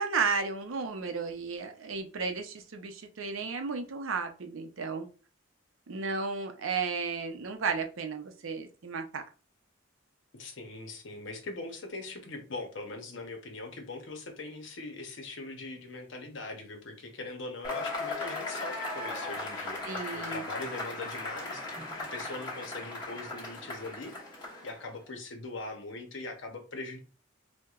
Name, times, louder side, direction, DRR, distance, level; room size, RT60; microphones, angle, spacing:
voice 1, 0.0-5.1 5.9-9.2 19.8-20.4, right 5 dB, 80° right, 6 dB, 0.6 m, -33 dB
voice 2, 10.3-21.7 22.1-24.1 24.6-27.0, left 2 dB, 60° left, 4 dB, 0.8 m, -41 dB
Cheering / Applause / Crowd, 17.6-24.9, left 2 dB, 20° left, 1.1 m, -37 dB
4.5 x 2.2 x 2.4 m, 0.36 s
head